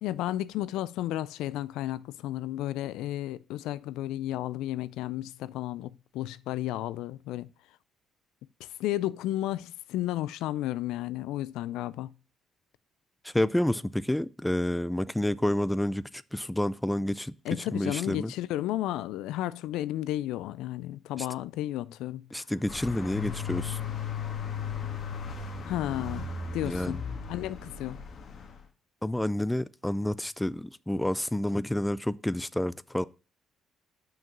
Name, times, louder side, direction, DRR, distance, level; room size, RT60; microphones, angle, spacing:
voice 1, 0.0-7.5 8.6-12.1 17.4-22.2 25.7-26.3 26.5-27.0 27.3-28.0, left 14 dB, 80° left, 0.3 m, -33 dB
voice 2, 13.2-18.3 21.2-21.3 22.3-23.8 26.6-27.0 29.0-33.0, left 1 dB, 5° left, 0.4 m, -29 dB
sound 1, 22.7-28.6, left 6 dB, 50° left, 1.5 m, -36 dB
6.0 x 4.7 x 6.0 m
supercardioid pair, 70°, 0 cm